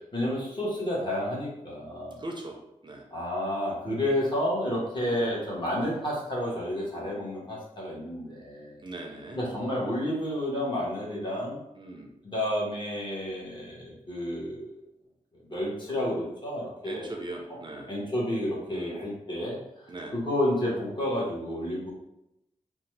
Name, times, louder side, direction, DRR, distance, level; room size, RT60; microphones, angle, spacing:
voice 1, 0.1-2.2 3.1-8.8 9.4-11.6 12.2-14.8 15.5-17.1 17.9-19.6 20.1-21.9, left 1 dB, 35° left, -5 dB, 1.2 m, -30 dB
voice 2, 2.2-3.1 8.8-9.4 11.8-12.1 16.8-17.9 18.7-19.1 19.9-20.2, right 2 dB, 35° right, 1 dB, 0.5 m, -40 dB
2.7 x 2.2 x 3.2 m, 0.85 s
cardioid pair, 70°, 14 cm